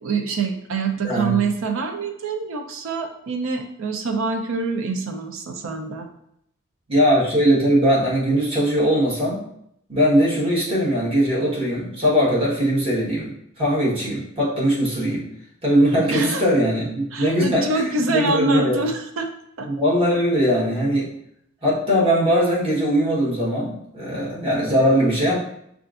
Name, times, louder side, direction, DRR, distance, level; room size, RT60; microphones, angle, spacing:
voice 1, 0.0-6.1 16.1-16.4 17.1-19.3 19.6-19.7, right 3 dB, 65° right, 4 dB, 0.5 m, -25 dB
voice 2, 1.0-1.4 6.9-9.4 9.9-13.3 13.6-15.2 15.6-17.8 18.1-18.8 19.7-21.1 21.6-25.4, equal, 25° right, -7 dB, 1.3 m, -20 dB
5.6 x 2.5 x 2.4 m, 0.73 s
head